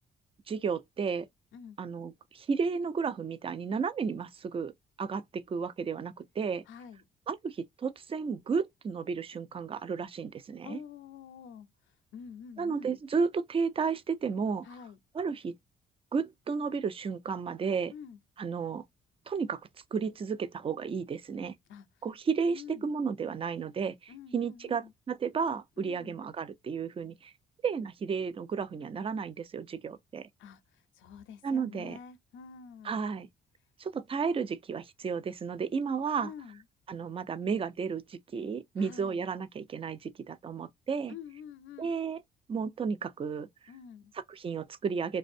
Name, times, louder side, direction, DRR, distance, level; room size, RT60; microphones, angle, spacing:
voice 1, 0.5-1.3 1.8-4.7 5.0-6.6 7.3-10.8 12.6-14.7 15.1-15.5 16.1-17.9 18.4-18.8 19.3-19.6 19.9-21.6 22.0-27.3 27.6-30.3 31.4-32.0 32.8-33.3 33.8-36.3 36.9-41.1 41.8-42.2 42.5-43.5 44.3-45.2, right 5 dB, 30° right, 0.4 m, -33 dB
voice 2, 6.7-7.0 10.6-13.0 14.6-15.0 17.9-18.2 21.7-21.9 22.5-23.0 24.1-24.9 25.8-26.2 30.4-33.0 36.2-36.6 38.8-39.2 41.1-41.9 43.7-44.1, left 7 dB, 80° left, 0.5 m, -48 dB
2.5 x 2.1 x 2.5 m
cardioid pair, 90°, 20 cm